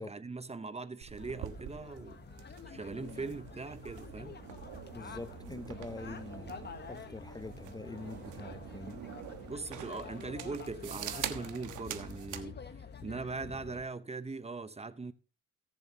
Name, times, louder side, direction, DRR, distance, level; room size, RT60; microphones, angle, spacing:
voice 1, 0.0-2.2 2.7-4.4 9.5-12.6 13.0-15.1, right 4 dB, 20° right, 0.9 m, -40 dB
sound 1, 1.0-12.5, right 11 dB, 80° right, 1.3 m, -45 dB
sound 2, 1.2-13.8, left 6 dB, 35° left, 1.3 m, -48 dB
voice 2, 4.9-9.1, left 3 dB, 15° left, 0.7 m, -45 dB
17.5 x 7.3 x 2.9 m
cardioid pair, 90°, 30 cm